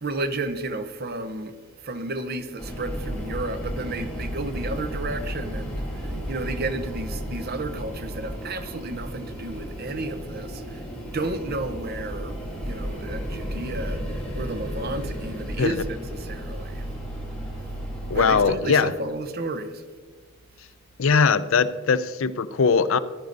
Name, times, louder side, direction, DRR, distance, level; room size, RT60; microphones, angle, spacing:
voice 1, 0.0-16.9 17.6-17.7 18.1-19.8, right 2 dB, 45° right, 0.8 m, -32 dB
sound 1, 2.6-18.4, equal, 5° left, 2.2 m, -33 dB
voice 2, 18.1-18.9 21.0-23.0, left 5 dB, 70° left, 0.5 m, -21 dB
14.5 x 10.5 x 3.9 m
head